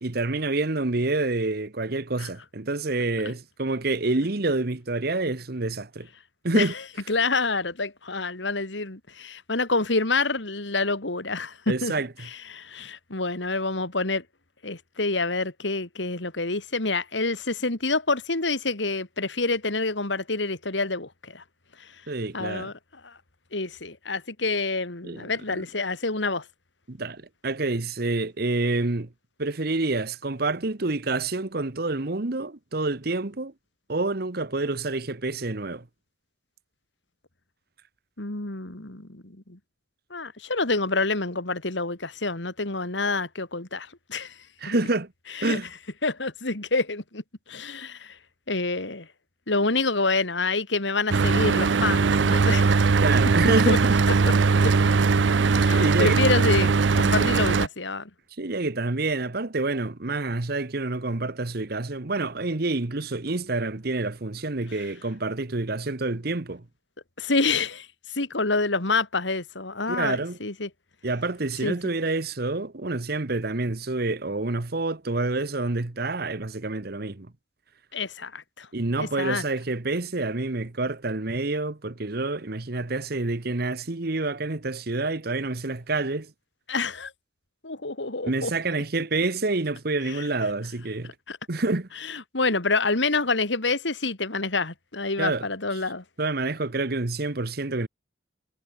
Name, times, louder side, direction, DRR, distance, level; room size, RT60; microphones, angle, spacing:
voice 1, 0.0-6.1 6.4-6.7 11.7-12.1 22.1-22.7 25.0-25.2 25.5-25.6 26.9-29.1 29.4-33.5 33.9-35.8 44.6-45.1 45.4-45.7 53.0-54.0 55.7-56.2 58.4-66.6 69.9-70.4 71.0-77.3 78.7-86.3 88.2-91.1 91.5-91.9 95.2-95.4 96.2-97.9, right 2 dB, 55° right, 1.2 m, -27 dB
voice 2, 7.1-11.9 12.2-14.2 14.6-21.4 21.8-22.0 22.3-22.7 23.0-23.2 23.5-26.4 38.2-39.6 40.1-44.4 44.7-44.8 45.3-45.6 46.0-48.2 48.5-49.1 49.5-52.7 53.7-53.8 54.6-54.7 55.5-58.1 67.2-70.7 71.6-71.8 77.9-78.7 79.0-79.4 86.7-87.1 87.6-88.5 90.1-90.3 91.3-91.4 92.0-96.0, left 3 dB, 75° left, 2.8 m, -27 dB
Mechanical fan, 51.1-57.7, right 4 dB, 75° right, 0.6 m, -20 dB
head